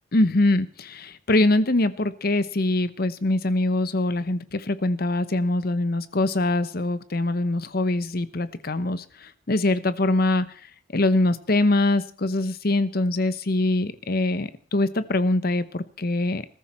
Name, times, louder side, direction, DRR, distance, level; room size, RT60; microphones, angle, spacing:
voice 1, 0.1-16.5, left 2 dB, 50° left, 14 dB, 0.9 m, -23 dB
21.0 x 14.0 x 4.4 m, 0.41 s
head